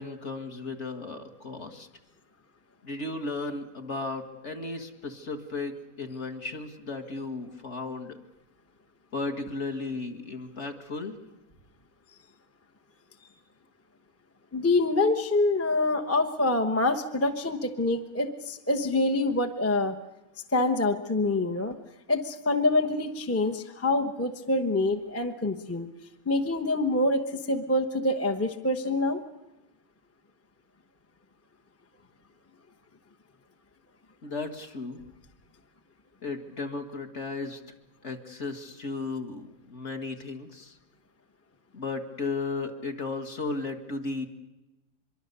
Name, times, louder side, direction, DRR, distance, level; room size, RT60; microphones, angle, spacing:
voice 1, 0.0-1.9 2.8-8.2 9.1-11.1 34.2-35.0 36.2-37.6 38.0-40.8 41.7-44.3, left 3 dB, 40° left, 6 dB, 1.9 m, -35 dB
voice 2, 14.5-20.0 20.5-21.8 22.1-25.9 26.3-29.2, left 2 dB, 15° left, 4 dB, 0.6 m, -26 dB
24.5 x 23.0 x 6.8 m, 0.99 s
omnidirectional pair, 2.0 m